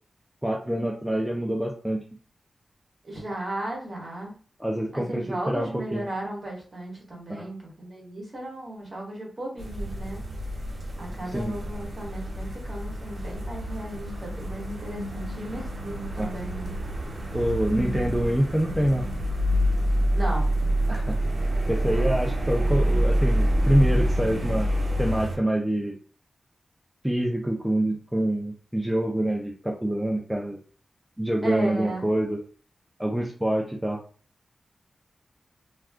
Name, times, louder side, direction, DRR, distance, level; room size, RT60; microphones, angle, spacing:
voice 1, 0.4-2.0 4.6-6.1 7.3-7.5 11.3-11.5 16.2-16.3 17.3-19.1 20.9-21.2 21.7-24.7 25.0-26.0 27.0-30.6 31.2-32.4 33.0-34.0, right 1 dB, 5° right, -1 dB, 0.4 m, -26 dB
voice 2, 3.0-4.3 4.9-10.2 11.0-16.7 20.1-20.5 21.8-22.1 31.4-32.1, right 1 dB, 40° right, -2 dB, 1.2 m, -35 dB
sound 1, 9.6-25.4, equal, 60° right, 0.7 m, -27 dB
2.4 x 2.3 x 3.4 m, 0.39 s
wide cardioid pair, 145°, 0 cm